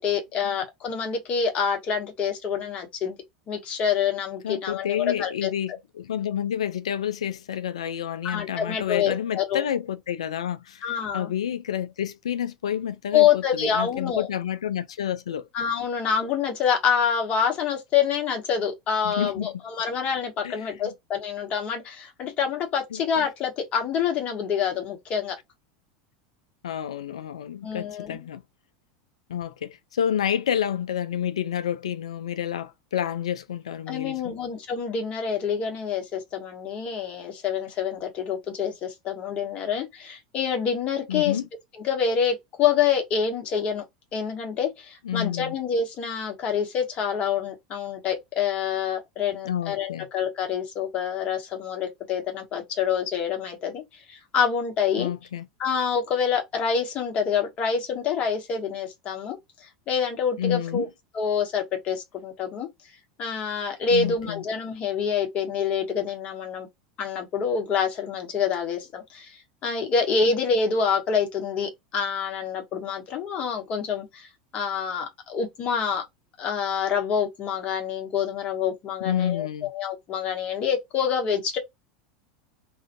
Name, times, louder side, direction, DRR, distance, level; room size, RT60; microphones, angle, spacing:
voice 1, 0.0-3.2 3.5-5.5 8.2-9.6 10.8-11.3 13.1-14.3 15.5-25.4 27.6-28.3 33.9-41.4 41.8-43.8 44.1-55.1 55.6-60.9 61.1-62.7 63.2-66.7 67.0-74.3 74.5-76.0 76.4-81.6, left 7 dB, 45° left, 1.1 m, -27 dB
voice 2, 4.4-15.5 19.0-19.5 20.4-20.7 22.9-23.0 26.6-28.4 29.3-34.4 41.1-41.5 45.0-45.5 49.4-50.1 55.0-55.4 60.4-60.9 63.9-64.4 79.0-79.7, left 9 dB, 85° left, 0.3 m, -29 dB
2.6 x 2.4 x 2.5 m
hypercardioid pair, 90°, 3 cm